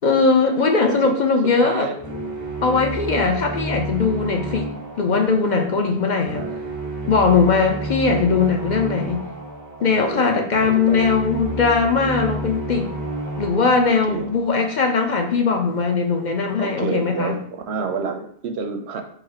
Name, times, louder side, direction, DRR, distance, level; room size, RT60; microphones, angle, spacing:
voice 1, 0.0-1.9 2.6-6.4 7.1-9.2 9.8-12.9 13.4-17.4, left 4 dB, 55° left, 4 dB, 0.6 m, -20 dB
voice 2, 1.4-2.0 5.3-5.4 6.3-6.6 9.8-11.1 13.9-14.3 16.6-19.0, right 5 dB, 90° right, 5 dB, 0.9 m, -29 dB
sound 1, 2.0-15.1, right 1 dB, 20° right, 0.6 m, -31 dB
3.9 x 2.7 x 4.3 m, 0.62 s
omnidirectional pair, 1.1 m